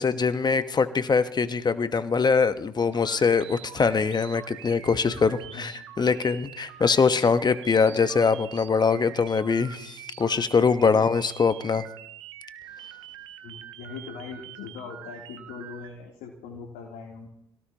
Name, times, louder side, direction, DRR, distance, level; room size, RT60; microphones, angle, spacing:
voice 1, 0.0-11.8, left 5 dB, 30° left, 11 dB, 1.3 m, -23 dB
sound 1, 2.9-15.9, right 11 dB, 85° right, 1.1 m, -45 dB
voice 2, 13.4-17.3, left 5 dB, 70° left, 0 dB, 3.3 m, -41 dB
27.5 x 17.5 x 3.0 m, 0.78 s
hypercardioid pair, 60°, 14 cm